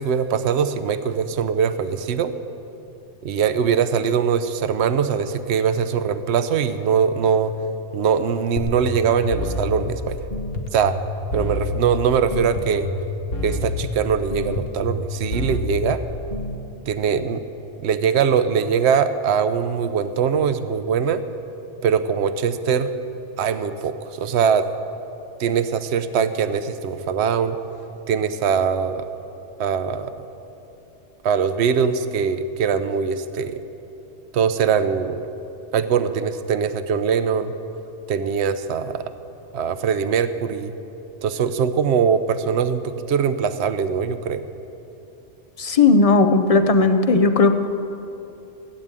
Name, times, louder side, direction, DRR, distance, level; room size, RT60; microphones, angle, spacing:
voice 1, 0.0-2.3 3.2-7.5 7.9-10.2 10.7-11.0 11.3-12.9 13.4-16.0 16.9-17.4 17.8-21.2 21.8-22.9 23.4-24.6 25.4-27.6 28.1-29.1 29.6-30.1 31.2-33.6 34.3-35.2 35.7-37.5 38.1-39.0 39.5-40.7 41.2-44.4, right 7 dB, 65° right, 11 dB, 0.9 m, -22 dB
sound 1, 8.6-16.6, left 2 dB, 55° left, 1.3 m, -29 dB
voice 2, 45.6-47.6, left 3 dB, 35° left, 8 dB, 0.7 m, -16 dB
16.0 x 8.8 x 9.0 m, 2.8 s
omnidirectional pair, 1.2 m